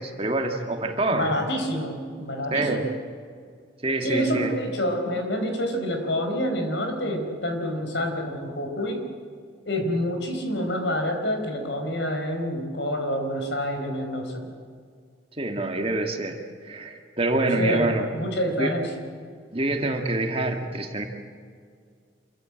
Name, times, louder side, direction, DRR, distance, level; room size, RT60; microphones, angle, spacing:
voice 1, 0.0-1.3 2.5-2.8 3.8-4.5 15.4-18.1 18.6-18.7 19.5-21.1, right 2 dB, 30° right, 4 dB, 2.0 m, -26 dB
voice 2, 1.1-2.9 4.0-9.0 9.6-14.4 17.5-18.9, equal, 70° left, 4 dB, 4.4 m, -27 dB
26.5 x 14.5 x 8.8 m, 2.1 s
head